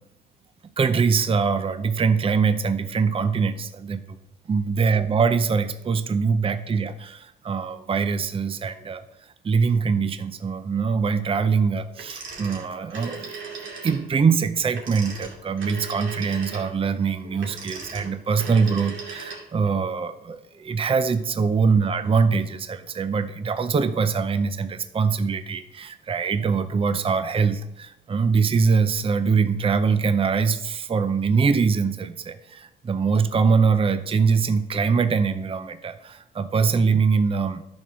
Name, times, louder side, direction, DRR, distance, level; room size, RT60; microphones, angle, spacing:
voice 1, 0.8-4.2 4.5-9.0 9.4-13.4 13.8-37.6, right 5 dB, 30° right, 11 dB, 0.6 m, -23 dB
Telephone, 12.0-14.0 14.7-19.7, right 4 dB, 70° right, 2.6 m, -38 dB
10.5 x 4.5 x 6.2 m, 0.85 s
cardioid pair, 90°, 20 cm